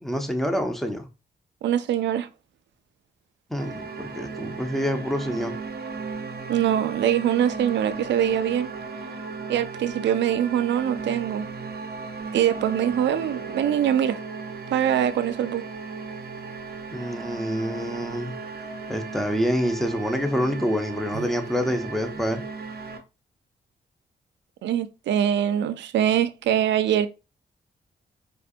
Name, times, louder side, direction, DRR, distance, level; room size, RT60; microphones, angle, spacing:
voice 1, 0.0-1.1 3.5-5.6 16.9-18.4 18.9-22.4, equal, ahead, 1.0 m, -27 dB
voice 2, 1.6-2.3 6.5-8.7 9.5-11.5 12.3-14.2 14.7-15.6 21.1-21.3 24.6-27.1, right 10 dB, 80° right, 0.4 m, -23 dB
sound 1, 3.6-23.0, right 4 dB, 60° right, 0.8 m, -36 dB
4.5 x 2.5 x 2.5 m
supercardioid pair, 45°, 18 cm